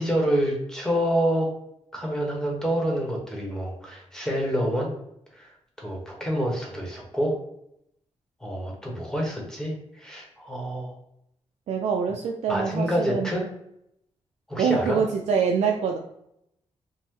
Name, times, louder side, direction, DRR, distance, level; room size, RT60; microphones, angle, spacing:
voice 1, 0.0-1.5 1.9-4.9 5.3-5.5 5.8-7.3 8.4-11.0 12.5-13.4 14.5-15.0, equal, 5° left, -1 dB, 0.9 m, -27 dB
voice 2, 11.7-13.3 14.6-16.0, right 6 dB, 80° right, 2 dB, 0.4 m, -25 dB
5.4 x 2.0 x 3.0 m, 0.77 s
wide cardioid pair, 165°, 11 cm